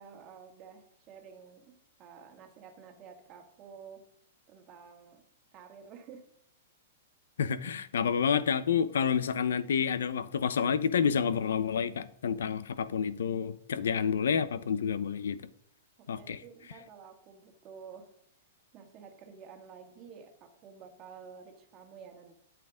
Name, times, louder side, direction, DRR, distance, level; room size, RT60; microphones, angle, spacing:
voice 1, 0.0-4.1 4.5-5.2 5.5-6.3 16.0-18.1 18.7-22.3, right 6 dB, 25° right, 1.9 m, -51 dB
voice 2, 7.4-15.5 16.1-16.4, left 7 dB, 85° left, 0.8 m, -29 dB
12.5 x 8.6 x 3.8 m
hypercardioid pair, 160°, 0 cm